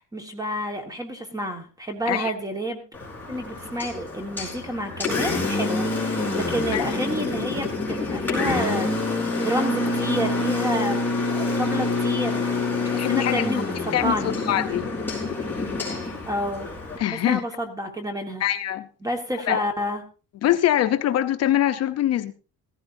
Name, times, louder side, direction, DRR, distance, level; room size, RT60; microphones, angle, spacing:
voice 1, 0.0-2.8 3.3-14.4 16.3-16.7 17.1-18.4 19.0-20.0, equal, 10° right, 5 dB, 1.5 m, -30 dB
Engine, 2.9-17.0, left 3 dB, 5° left, 4.3 m, -27 dB
voice 2, 13.0-13.5 13.9-14.1 14.5-14.9 17.0-17.4 18.4-18.9 19.5-19.6 20.4-22.3, left 12 dB, 50° left, 10 dB, 0.7 m, -23 dB
15.5 x 14.5 x 2.6 m, 0.34 s
cardioid pair, 160°, 34 cm